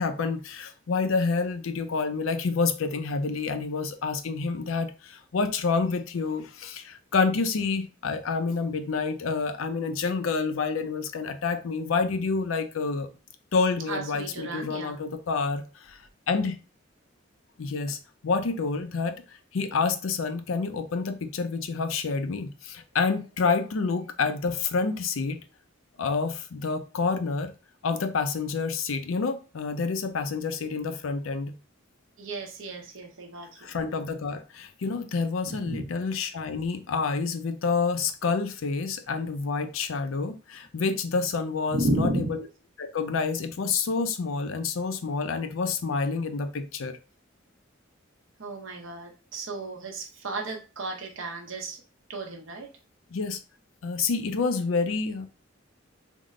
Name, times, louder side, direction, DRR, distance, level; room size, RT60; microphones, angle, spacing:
voice 1, 0.0-13.1 13.5-16.6 17.6-18.0 18.2-19.2 19.5-25.4 26.0-27.5 27.8-31.5 33.6-42.4 42.8-47.0 53.1-53.4 53.8-55.3, left 4 dB, 85° left, 0.5 m, -28 dB
voice 2, 13.9-15.0 32.2-33.7 35.6-35.9 41.7-42.3 48.4-51.8 52.1-52.7, right 2 dB, 75° right, 0.9 m, -33 dB
3.6 x 2.1 x 3.6 m
head